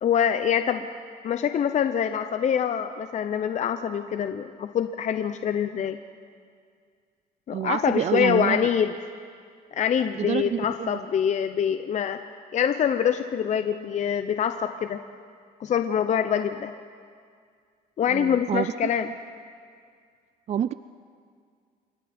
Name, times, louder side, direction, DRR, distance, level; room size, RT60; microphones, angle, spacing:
voice 1, 0.0-0.9 1.2-6.0 7.5-8.9 9.7-12.2 12.5-15.0 15.6-16.7 18.0-19.1, left 8 dB, 45° left, 9 dB, 0.7 m, -25 dB
voice 2, 7.5-8.7 10.2-11.0 18.1-18.7 20.5-20.7, right 10 dB, 40° right, 14 dB, 0.4 m, -27 dB
26.5 x 23.0 x 4.4 m, 2.1 s
cardioid pair, 110°, 17 cm